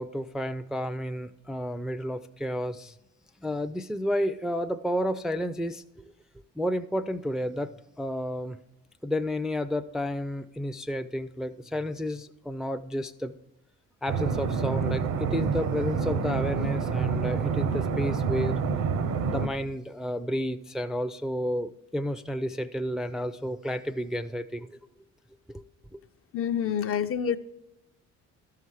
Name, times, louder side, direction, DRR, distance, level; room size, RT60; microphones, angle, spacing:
voice 1, 0.0-2.9 3.4-5.8 6.6-7.7 8.0-8.6 9.0-13.3 14.0-18.6 19.3-24.8 25.5-25.6 25.9-26.0, equal, ahead, 9 dB, 0.4 m, -31 dB
sound 1, 14.1-19.5, right 6 dB, 75° right, 0.8 m, -27 dB
voice 2, 26.3-27.4, left 8 dB, 50° left, 10 dB, 0.5 m, -27 dB
13.0 x 5.8 x 4.7 m, 0.91 s
cardioid pair, 90°, 30 cm